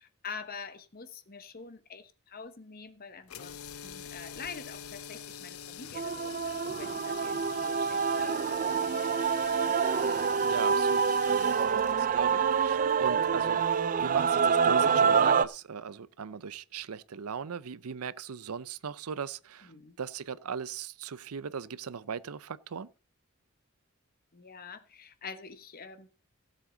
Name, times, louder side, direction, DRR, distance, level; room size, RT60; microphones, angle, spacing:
voice 1, 0.0-9.8 19.6-20.0 24.3-26.1, left 5 dB, 45° left, 1.1 m, -46 dB
sound 1, 3.3-13.4, left 8 dB, 75° left, 0.7 m, -45 dB
Male singing / Female singing / Musical instrument, 5.9-15.4, right 6 dB, 40° right, 0.4 m, -26 dB
voice 2, 10.4-13.6 14.0-19.7 20.0-22.9, right 6 dB, 85° right, 0.6 m, -38 dB
16.5 x 7.6 x 3.9 m
head